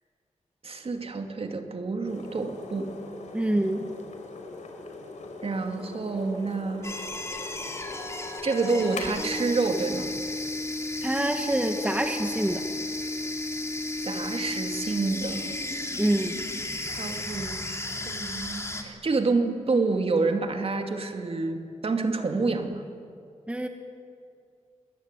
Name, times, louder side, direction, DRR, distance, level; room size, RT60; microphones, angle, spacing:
voice 1, 0.6-2.9 5.4-6.9 8.4-10.2 14.0-15.5 16.9-22.8, right 3 dB, 45° right, 5 dB, 2.5 m, -28 dB
sound 1, 2.1-9.0, left 3 dB, 65° left, 4.3 m, -41 dB
voice 2, 3.3-3.9 11.0-12.6 16.0-16.4 23.5-23.7, right 1 dB, 10° right, 5 dB, 1.8 m, -26 dB
sound 2, 6.8-18.8, left 2 dB, 20° left, 3.0 m, -33 dB
27.5 x 21.0 x 9.1 m, 2.4 s
wide cardioid pair, 110°, 13 cm